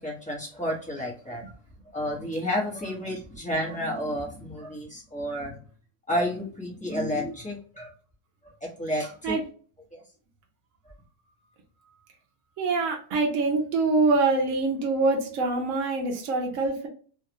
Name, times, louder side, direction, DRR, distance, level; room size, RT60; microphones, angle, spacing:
voice 1, 0.0-1.5 1.9-5.6 6.1-7.9 8.4-8.5 8.8-9.4 9.9-10.0 10.8-10.9, equal, 5° left, -3 dB, 0.9 m, -31 dB
voice 2, 12.6-16.9, right 3 dB, 60° right, 1 dB, 1.0 m, -24 dB
3.2 x 2.4 x 2.9 m, 0.42 s
omnidirectional pair, 1.7 m